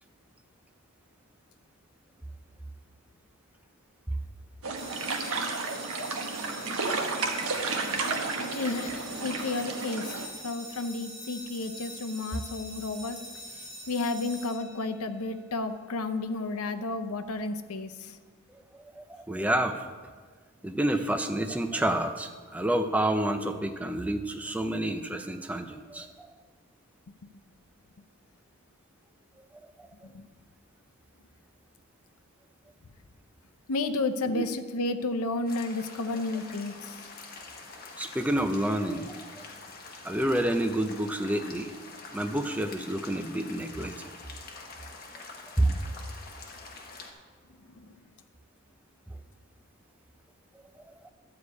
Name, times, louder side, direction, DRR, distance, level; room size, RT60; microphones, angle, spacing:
sound 1, 4.6-10.3, right 3 dB, 80° right, 1.1 m, -32 dB
sound 2, 4.8-15.2, equal, 20° right, 2.7 m, -44 dB
voice 1, 8.4-10.1 10.4-13.2 13.9-18.2 30.0-30.3 33.7-37.0 47.7-47.9, left 2 dB, 85° left, 9 dB, 0.7 m, -32 dB
voice 2, 18.5-19.9 20.6-26.3 29.6-29.9 34.3-34.4 38.0-39.3 40.0-41.7 42.1-44.1 45.6-45.8 50.5-51.1, right 1 dB, 5° right, 6 dB, 0.4 m, -29 dB
sound 3, 35.5-47.1, left 3 dB, 40° left, 1.2 m, -46 dB
11.5 x 4.9 x 8.3 m, 1.5 s
head